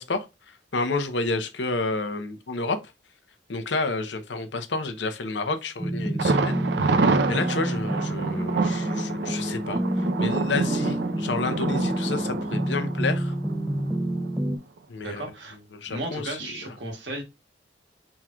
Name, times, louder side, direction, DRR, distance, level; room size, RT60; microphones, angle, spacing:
voice 1, 0.0-2.8 3.5-13.3 14.9-15.3 15.7-16.7, left 3 dB, 85° left, 0.7 m, -30 dB
sound 1, 5.8-14.6, right 1 dB, 10° right, 0.4 m, -28 dB
Thunder, 6.2-14.0 14.3-14.4 14.8-14.9, right 4 dB, 70° right, 0.5 m, -28 dB
voice 2, 15.0-15.6 15.9-17.2, right 1 dB, 90° right, 1.6 m, -34 dB
4.4 x 3.7 x 2.3 m
head